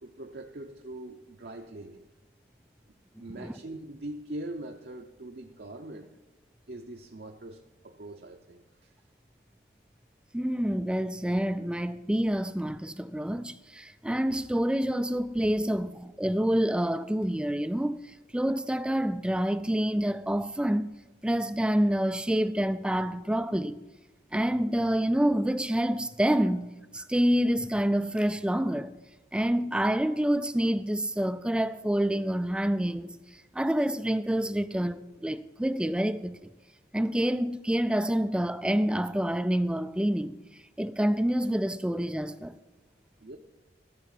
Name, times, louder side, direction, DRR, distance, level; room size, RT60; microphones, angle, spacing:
voice 1, 0.0-2.1 3.2-6.1 6.7-8.9 43.2-43.4, right 1 dB, 60° right, 0.7 m, -42 dB
voice 2, 10.3-20.9 21.2-23.8 24.3-28.9 29.3-36.5 36.9-40.4 40.8-42.6, equal, 5° right, 0.3 m, -27 dB
14.0 x 6.9 x 7.4 m
head